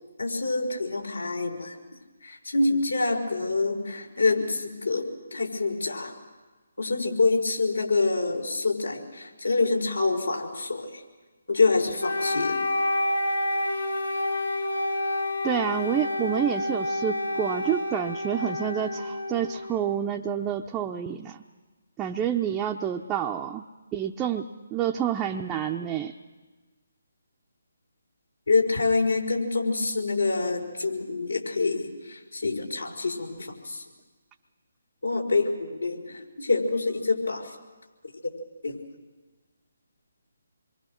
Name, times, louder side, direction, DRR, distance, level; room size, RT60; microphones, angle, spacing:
voice 1, 0.2-1.7 2.2-6.1 6.8-10.9 11.5-12.6 28.5-33.8 35.0-37.5 38.2-38.3 38.6-38.8, left 3 dB, 80° left, 2 dB, 5.0 m, -26 dB
Wind instrument woodwind instrument, 12.0-20.0, left 1 dB, 60° left, 4.4 m, -29 dB
voice 2, 15.4-21.4 22.0-23.6 23.9-26.1, right 9 dB, 15° right, 1 dB, 0.7 m, -28 dB
28.0 x 23.0 x 6.4 m, 1.3 s
figure-of-eight pair, 150°, 0 cm